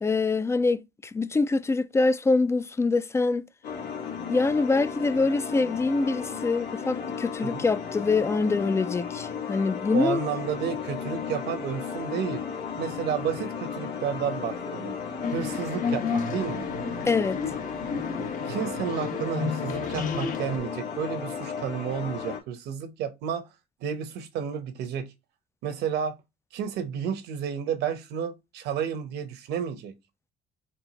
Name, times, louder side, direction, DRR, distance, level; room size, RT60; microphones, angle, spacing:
voice 1, 0.0-3.4 4.3-10.2 17.1-17.4, left 3 dB, 15° left, 0.3 m, -24 dB
sound 1, 3.6-22.4, left 6 dB, 85° left, 1.4 m, -35 dB
voice 2, 9.9-12.4 12.8-15.0 15.3-16.7 18.5-23.5 23.8-25.1 25.6-26.2 26.5-29.9, right 8 dB, 80° right, 0.9 m, -31 dB
sound 2, 15.2-20.6, left 5 dB, 50° left, 1.0 m, -31 dB
4.4 x 2.5 x 4.0 m
cardioid pair, 110°, 17 cm